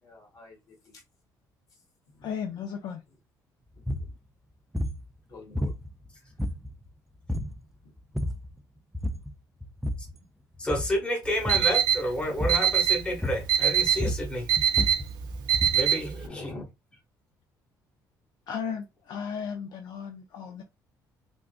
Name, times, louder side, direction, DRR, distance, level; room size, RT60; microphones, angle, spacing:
voice 1, 0.0-1.0 2.1-2.3 3.7-3.8 5.3-5.7 7.8-7.9 16.1-16.7, left 3 dB, 55° left, 1.4 m, -45 dB
voice 2, 2.2-3.0 18.5-20.6, left 7 dB, 70° left, 0.5 m, -35 dB
sound 1, 3.8-4.1 4.7-5.0 5.5-6.1 6.4-6.9 7.3-7.6 8.0-8.5 8.9-9.3 9.6-10.2 10.6-11.0 11.4-11.8 12.4-12.7 13.2-13.6 13.9-15.9, left 1 dB, 5° right, 0.3 m, -31 dB
voice 3, 10.6-14.5 15.7-16.5, equal, 15° left, 1.0 m, -30 dB
Alarm, 11.2-16.3, right 9 dB, 80° right, 0.5 m, -25 dB
3.5 x 2.5 x 2.4 m
cardioid pair, 125°, 7 cm